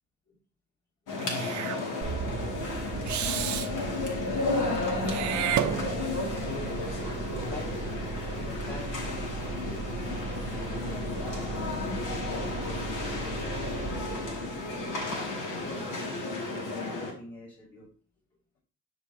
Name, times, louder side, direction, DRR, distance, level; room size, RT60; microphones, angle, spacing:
sound 1, 1.1-17.1, left 2 dB, 80° left, 2.2 m, -33 dB
Meow / Hiss, 1.2-1.8 3.1-3.7 5.0-6.3, right 10 dB, 70° right, 0.8 m, -31 dB
sound 2, 2.0-15.5, right 4 dB, 35° right, 0.6 m, -37 dB
voice 1, 7.4-7.7 8.3-13.5 13.8-17.9, left 3 dB, 55° left, -6 dB, 4.4 m, -46 dB
9.5 x 6.0 x 2.8 m, 0.39 s
cardioid pair, 90°, 30 cm